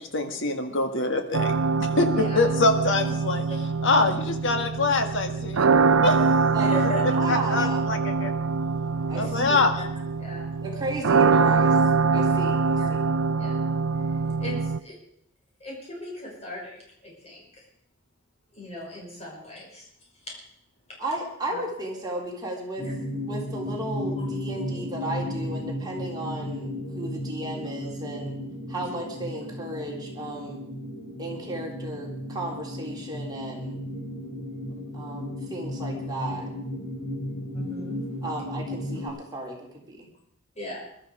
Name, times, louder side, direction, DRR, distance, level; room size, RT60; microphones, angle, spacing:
voice 1, 0.0-3.4 3.8-5.7 6.0-6.2 7.3-8.3 9.1-9.8, left 3 dB, 60° left, 6 dB, 1.8 m, -24 dB
sound 1, 1.3-14.8, right 4 dB, 70° right, 0.5 m, -24 dB
voice 2, 2.1-2.5 3.5-3.6 6.6-7.3 9.1-9.3 10.2-10.5 11.5-11.6 12.8-13.1 13.4-13.7 14.4-15.0 15.6-17.7 18.5-19.9 21.5-21.6 24.2-24.3 37.5-38.0 38.9-39.0 40.5-40.8, left 1 dB, 30° left, -3 dB, 6.0 m, -38 dB
voice 3, 7.1-7.8 9.1-9.6 10.6-11.8 12.1-13.1 21.0-22.9 23.1-28.3 28.7-30.6 31.2-33.8 34.9-36.5 38.2-40.1, right 1 dB, 20° right, -2 dB, 3.5 m, -34 dB
sound 2, 22.8-39.1, left 1 dB, 80° left, 7.2 m, -34 dB
21.5 x 12.5 x 5.0 m, 0.72 s
head